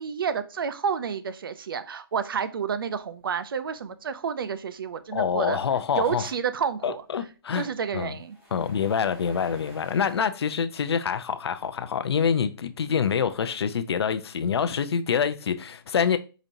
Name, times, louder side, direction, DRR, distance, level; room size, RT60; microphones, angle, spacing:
voice 1, 0.0-5.6 6.0-7.0 7.5-8.4, right 6 dB, 60° right, 0.4 m, -30 dB
sound 1, 3.0-10.1, equal, 10° right, 0.7 m, -53 dB
voice 2, 5.1-6.3 6.8-7.7 7.9-8.2 8.5-16.2, left 7 dB, 85° left, 0.5 m, -26 dB
5.0 x 2.8 x 2.6 m
hypercardioid pair, 175°, 13 cm